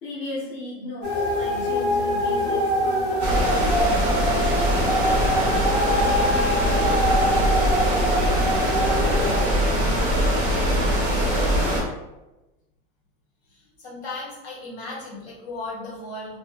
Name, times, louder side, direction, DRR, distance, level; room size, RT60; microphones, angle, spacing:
voice 1, 0.0-4.5 5.3-5.6, left 1 dB, 30° left, -6 dB, 0.6 m, -36 dB
sound 1, 1.0-9.5, equal, 55° left, 1.1 m, -24 dB
sound 2, 3.2-11.8, equal, 20° right, 0.5 m, -22 dB
voice 2, 13.5-16.4, left 2 dB, 90° left, -5 dB, 1.4 m, -36 dB
2.6 x 2.5 x 2.4 m, 1.0 s
supercardioid pair, 180°, 31 cm